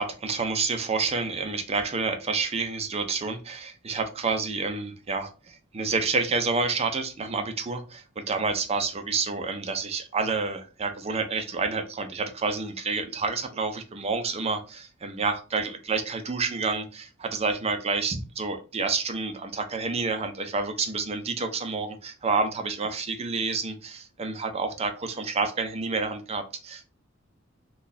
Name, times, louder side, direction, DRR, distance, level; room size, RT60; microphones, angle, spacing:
voice 1, 0.0-26.8, right 4 dB, 30° right, 0.5 m, -29 dB
2.7 x 2.3 x 3.7 m
head